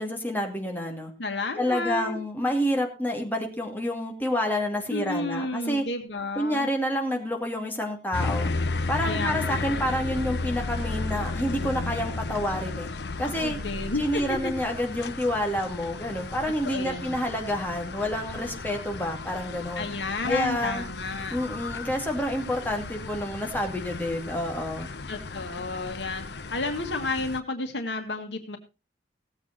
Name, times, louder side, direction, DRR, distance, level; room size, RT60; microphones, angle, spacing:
voice 1, 0.0-1.1 1.6-5.8 6.4-8.5 8.9-12.9 13.2-13.6 14.0-19.9 20.2-20.8 21.3-24.9, equal, 10° left, 2 dB, 2.5 m, -28 dB
voice 2, 1.2-2.2 4.9-6.7 9.0-9.6 13.4-14.5 16.5-17.2 19.8-21.4 25.1-26.3 26.5-28.6, left 2 dB, 85° left, 5 dB, 1.9 m, -31 dB
sound 1, 8.1-27.4, left 3 dB, 70° left, 0.8 m, -34 dB
17.5 x 8.0 x 4.4 m, 0.30 s
head